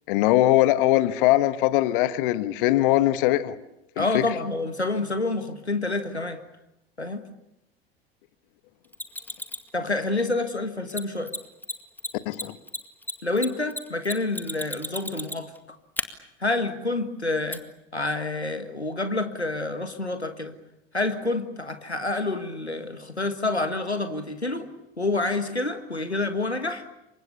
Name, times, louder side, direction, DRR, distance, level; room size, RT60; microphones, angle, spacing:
voice 1, 0.1-3.6 4.0-4.2 12.2-12.5, left 15 dB, 55° left, 14 dB, 1.4 m, -21 dB
voice 2, 4.0-6.4 7.0-7.2 9.7-11.3 13.2-15.8 16.4-17.6 17.9-20.5 20.9-24.7 25.0-26.8, left 2 dB, 90° left, 9 dB, 1.7 m, -28 dB
Mechanisms, 8.9-9.7 10.9-11.0 11.3-11.4 11.6-11.7 12.0-15.6 16.0-16.1 17.5-17.6, left 2 dB, 5° left, 2.0 m, -32 dB
28.5 x 24.5 x 7.0 m, 0.86 s
figure-of-eight pair, 75°, 32 cm